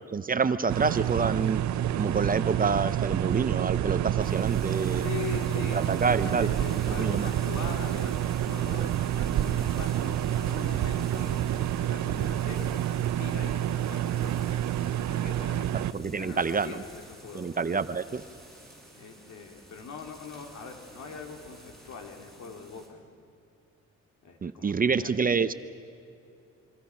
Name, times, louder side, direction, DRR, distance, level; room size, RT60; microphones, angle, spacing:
voice 1, 0.1-1.6 1.9-5.0 5.6-6.5 6.9-7.3 15.7-16.8 17.3-18.2 24.4-25.5, right 5 dB, 30° right, 12 dB, 0.7 m, -27 dB
sound 1, 0.7-15.9, right 11 dB, 70° right, 0.6 m, -28 dB
sound 2, 4.2-22.9, right 1 dB, ahead, 7.4 m, -48 dB
voice 2, 5.0-14.6 15.1-15.7 16.1-17.5 18.9-23.0 24.2-25.1, left 5 dB, 70° left, 3 dB, 2.9 m, -42 dB
26.0 x 24.5 x 5.8 m, 2.5 s
cardioid pair, 90°, 30 cm